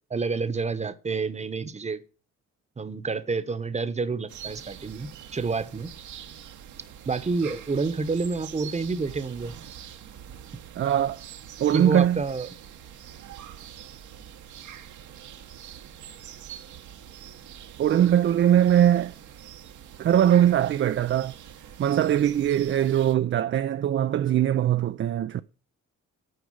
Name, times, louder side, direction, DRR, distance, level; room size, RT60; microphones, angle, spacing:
voice 1, 0.1-2.0 2.8-5.9 7.1-9.5 11.7-12.5, right 4 dB, 20° right, 1.0 m, -29 dB
Birds in the morning, 4.3-23.2, right 9 dB, 75° right, 1.2 m, -44 dB
voice 2, 10.8-11.2 11.6-12.2 17.8-19.1 20.0-21.3 21.8-25.4, right 10 dB, 40° right, 0.4 m, -21 dB
9.6 x 4.8 x 7.7 m
cardioid pair, 90°, 30 cm